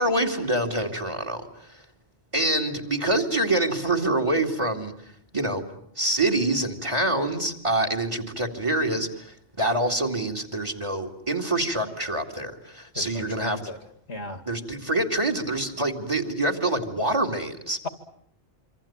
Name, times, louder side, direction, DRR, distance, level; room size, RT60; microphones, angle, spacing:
voice 1, 0.0-1.8 2.3-4.9 5.3-5.6 6.0-13.6 14.5-17.8, right 1 dB, 25° right, 6 dB, 2.7 m, -26 dB
voice 2, 12.9-13.8 14.1-14.4 17.8-17.9, left 2 dB, 75° left, 9 dB, 2.6 m, -35 dB
26.5 x 25.5 x 8.8 m, 0.70 s
omnidirectional pair, 1.1 m